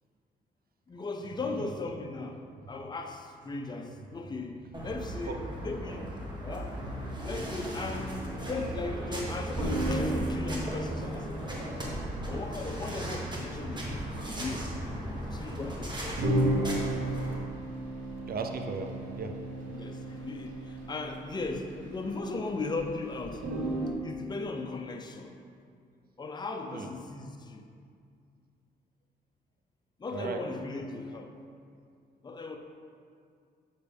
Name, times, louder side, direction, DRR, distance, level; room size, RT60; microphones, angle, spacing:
voice 1, 0.9-2.4 2.7-6.1 6.4-6.8 7.2-11.7 12.3-14.7 15.2-16.4 16.7-17.5 19.7-23.5 24.0-25.3 26.2-27.7 30.0-31.3 32.2-32.6, left 3 dB, 25° left, 4 dB, 0.6 m, -37 dB
sound 1, 4.7-17.3, equal, 25° right, 1.5 m, -37 dB
sound 2, 6.7-9.0 9.2-9.3 9.6-22.9 23.2-23.9, right 1 dB, 90° right, 1.8 m, -35 dB
voice 2, 18.2-19.4 26.7-26.9 30.1-30.4, right 4 dB, 60° right, 4 dB, 0.7 m, -36 dB
7.1 x 6.6 x 3.5 m, 2.3 s
cardioid pair, 75°, 17 cm